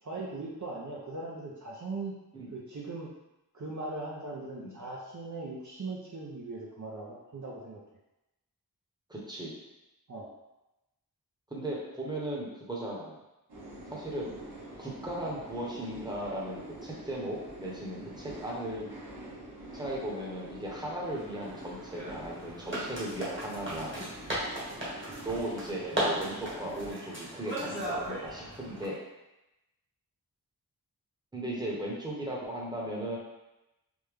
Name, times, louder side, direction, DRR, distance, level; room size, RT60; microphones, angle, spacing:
voice 1, 0.0-2.1 2.5-3.1 3.5-7.8 10.1-10.3 17.9-18.1, right 3 dB, 50° right, -4 dB, 0.6 m, -39 dB
voice 2, 9.1-9.5 11.5-13.2 13.9-14.3 14.8-18.9 19.7-24.0 25.2-28.9 31.3-33.2, right 1 dB, 10° right, -4 dB, 0.9 m, -37 dB
sound 1, 13.5-26.9, right 1 dB, 80° right, 0.9 m, -46 dB
sound 2, 21.0-28.8, right 1 dB, 30° right, 1.2 m, -37 dB
3.4 x 2.1 x 3.3 m, 0.96 s
wide cardioid pair, 40°, 38 cm